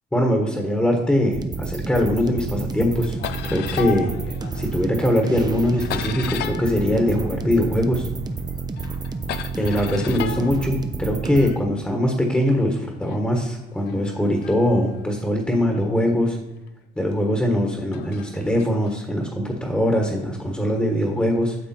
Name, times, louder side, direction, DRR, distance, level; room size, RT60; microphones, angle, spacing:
voice 1, 0.1-4.1 4.5-8.1 9.6-16.4 16.9-21.6, equal, 5° left, 2 dB, 1.4 m, -22 dB
sound 1, 1.3-11.5, right 4 dB, 25° right, 0.8 m, -30 dB
sound 2, 1.7-2.4 2.7-8.0 8.3-11.6 12.3-15.8 16.5-16.7 17.7-19.0, left 10 dB, 75° left, 0.6 m, -36 dB
9.4 x 6.7 x 4.4 m, 0.98 s
cardioid pair, 110°, 17 cm